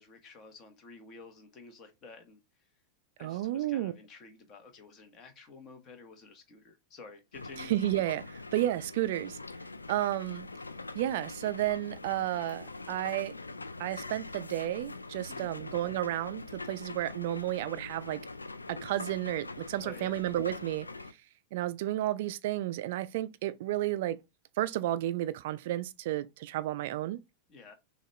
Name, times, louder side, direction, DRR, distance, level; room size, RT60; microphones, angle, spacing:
voice 1, 0.0-2.4 3.2-7.7 15.3-15.6 19.8-20.2 27.5-27.7, left 4 dB, 30° left, 1.2 m, -51 dB
voice 2, 3.2-3.9 7.7-9.4 9.9-10.5 10.9-13.3 13.8-18.2 18.7-20.9 21.5-24.2 24.6-27.2, right 14 dB, 55° right, 0.3 m, -32 dB
sound 1, 7.3-21.1, left 3 dB, 80° left, 0.3 m, -43 dB
6.3 x 2.4 x 3.0 m
figure-of-eight pair, 90°, 0 cm